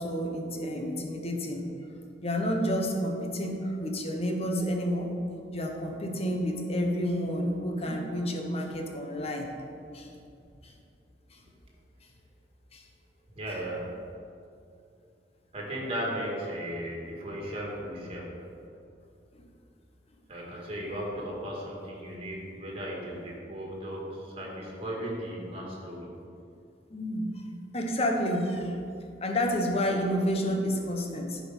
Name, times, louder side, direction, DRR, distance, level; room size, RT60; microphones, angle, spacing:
voice 1, 0.0-1.7 2.2-5.1 5.5-9.5 9.9-10.1 10.6-10.7 11.3-11.4 12.7-12.8 26.9-27.4 27.7-28.8 29.2-31.4, equal, 35° left, 2 dB, 1.0 m, -30 dB
voice 2, 13.3-13.9 15.5-18.3 20.3-26.1, equal, 35° right, -2 dB, 1.9 m, -36 dB
9.4 x 5.0 x 5.4 m, 2.5 s
head